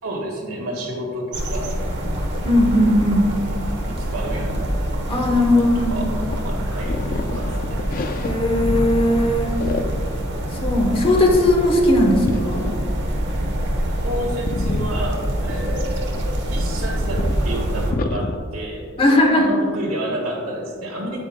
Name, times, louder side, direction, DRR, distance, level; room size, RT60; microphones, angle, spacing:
voice 1, 0.0-1.8 3.8-4.7 5.6-7.9 14.0-16.1 16.5-21.2, right 1 dB, 75° right, -1 dB, 1.8 m, -30 dB
sound 1, 1.3-17.9, right 1 dB, 55° right, 1.0 m, -25 dB
voice 2, 2.4-3.3 5.1-6.1 8.2-9.5 10.6-12.7 19.0-19.5, left 1 dB, 25° left, 1 dB, 1.0 m, -18 dB
sound 2, 5.8-8.9 9.2-10.1 10.4-11.0 12.3-12.7 13.3-13.4 13.7-14.1 14.4-16.7 17.2-17.4 17.9-18.4, left 3 dB, 40° left, 0.4 m, -29 dB
9.1 x 8.8 x 2.2 m, 2.1 s
head